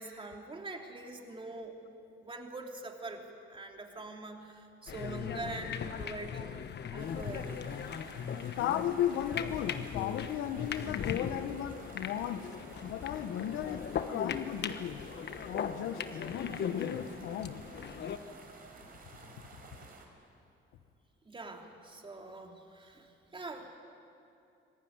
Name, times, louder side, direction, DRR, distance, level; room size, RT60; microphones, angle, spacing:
voice 1, 0.0-1.8 2.2-6.5 6.9-7.6 15.9-16.1 21.2-23.8, right 2 dB, 25° right, 2 dB, 3.2 m, -44 dB
sound 1, 4.9-18.2, left 7 dB, 60° left, 1.3 m, -39 dB
sound 2, 7.0-20.1, right 3 dB, 50° right, 4.5 m, -53 dB
voice 2, 8.6-12.5 12.8-15.0 15.5-17.6, left 10 dB, 90° left, 11 dB, 1.2 m, -35 dB
25.5 x 18.0 x 9.7 m, 2.7 s
cardioid pair, 90°, 20 cm